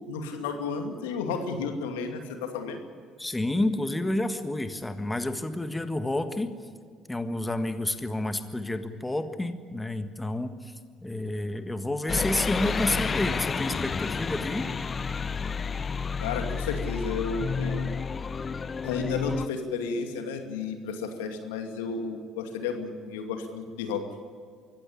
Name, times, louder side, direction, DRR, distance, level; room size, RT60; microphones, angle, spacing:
voice 1, 0.0-2.8 16.2-17.9 18.8-24.0, left 5 dB, 75° left, 5 dB, 2.4 m, -32 dB
voice 2, 3.2-6.5 7.1-10.8 11.0-14.7, left 1 dB, 15° left, 9 dB, 1.6 m, -30 dB
sound 1, 12.1-19.5, left 5 dB, 30° left, 0.8 m, -30 dB
24.0 x 15.5 x 10.0 m, 2.1 s
figure-of-eight pair, 55°, 0 cm